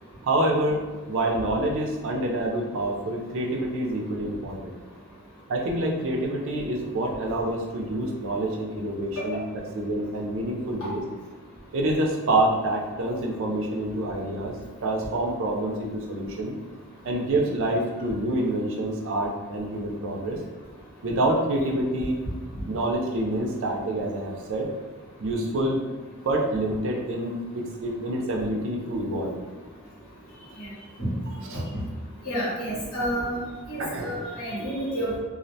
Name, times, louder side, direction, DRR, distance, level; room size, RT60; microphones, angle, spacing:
voice 1, 0.2-4.7 5.5-9.4 9.7-11.0 11.7-14.5 14.8-16.5 17.0-20.4 21.0-22.2 22.7-24.7 25.2-25.8 26.2-29.4 31.4-31.6 33.8-34.3, right 1 dB, 65° right, 0 dB, 0.4 m, -27 dB
voice 2, 32.2-33.4 33.7-35.2, equal, 85° left, -7 dB, 1.1 m, -30 dB
2.4 x 2.1 x 2.6 m, 1.3 s
head